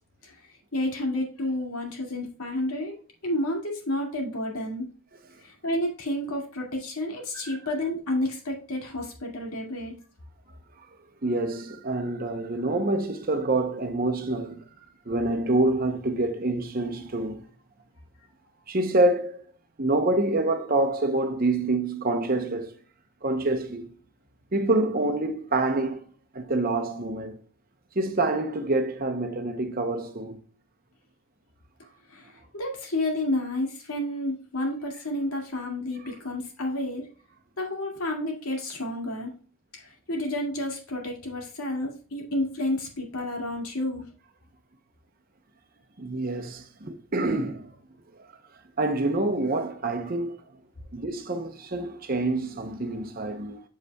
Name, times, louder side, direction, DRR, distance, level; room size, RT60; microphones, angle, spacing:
voice 1, 0.7-3.0 3.2-4.9 5.4-9.9 32.1-37.1 37.6-39.3 39.7-44.0, left 1 dB, 75° left, 2.2 m, -30 dB
voice 2, 11.2-14.6 15.1-17.4 18.7-19.4 19.8-22.7 23.2-23.9 24.5-26.0 26.3-27.4 28.0-30.4 46.0-47.7 48.8-50.3 50.9-53.6, right 2 dB, 40° right, 0.7 m, -26 dB
8.0 x 6.6 x 2.3 m
head